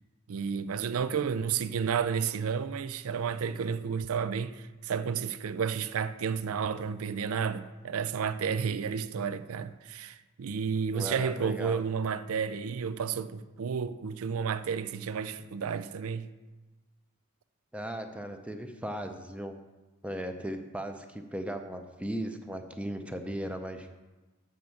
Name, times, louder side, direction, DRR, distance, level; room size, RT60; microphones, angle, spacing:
voice 1, 0.3-16.3, right 6 dB, 70° right, 0.4 m, -31 dB
voice 2, 10.9-11.8 17.7-19.5 20.0-24.0, right 1 dB, 5° right, 0.5 m, -37 dB
7.8 x 5.2 x 7.0 m
head